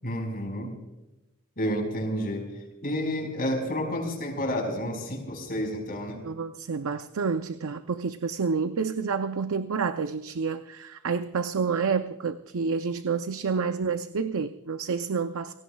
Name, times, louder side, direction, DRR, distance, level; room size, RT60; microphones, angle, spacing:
voice 1, 0.0-0.7 1.6-6.2, equal, 40° left, 4.8 m, -30 dB
voice 2, 6.2-15.5, right 5 dB, 65° right, 0.5 m, -29 dB
30.0 x 17.0 x 2.3 m
head